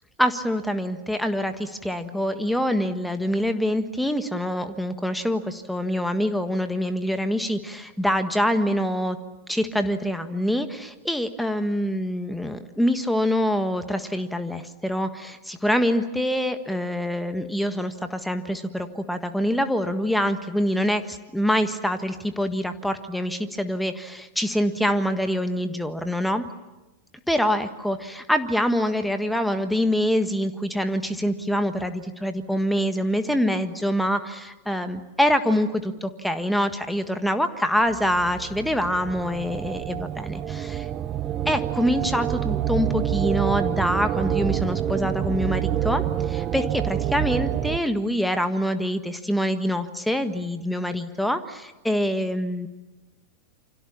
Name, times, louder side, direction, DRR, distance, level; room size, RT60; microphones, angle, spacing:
voice 1, 0.2-9.2 9.5-26.4 27.3-40.9 41.4-52.7, equal, ahead, 9 dB, 1.5 m, -25 dB
sound 1, 37.9-47.8, right 11 dB, 30° right, 1.0 m, -27 dB
29.0 x 26.0 x 7.3 m, 1.0 s
figure-of-eight pair, 90°, 0 cm